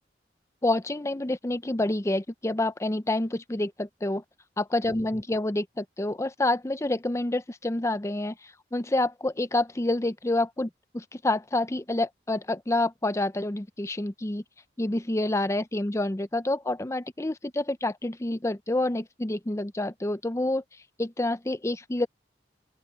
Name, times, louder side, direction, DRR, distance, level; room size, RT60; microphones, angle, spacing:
voice 1, 0.6-4.2 4.6-8.4 8.7-14.4 14.8-20.6 21.0-22.1, left 2 dB, 15° left, 0.6 m, -28 dB
open air
head